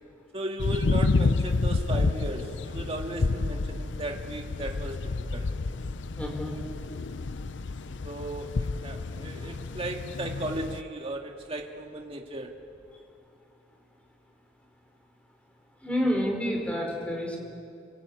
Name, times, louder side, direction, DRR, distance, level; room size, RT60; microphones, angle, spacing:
voice 1, 0.3-5.5 8.0-12.5, right 1 dB, 30° right, 2 dB, 2.0 m, -36 dB
sound 1, 0.6-10.8, left 3 dB, 75° left, 0.6 m, -29 dB
voice 2, 6.2-6.6 15.8-17.4, equal, 5° left, 1 dB, 4.9 m, -28 dB
28.0 x 23.0 x 8.7 m, 2.5 s
head